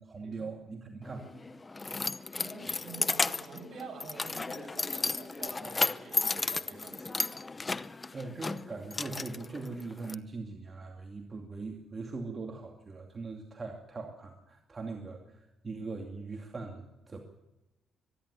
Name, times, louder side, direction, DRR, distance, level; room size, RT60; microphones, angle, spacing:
voice 1, 0.0-1.3 8.1-17.2, right 3 dB, 30° right, 3 dB, 2.4 m, -41 dB
Keys jangling, 1.1-10.1, left 3 dB, 25° left, 0.8 m, -34 dB
voice 2, 2.4-7.4, right 4 dB, 55° right, 3 dB, 6.9 m, -47 dB
24.0 x 11.0 x 9.9 m, 0.96 s
cardioid pair, 90°, 0 cm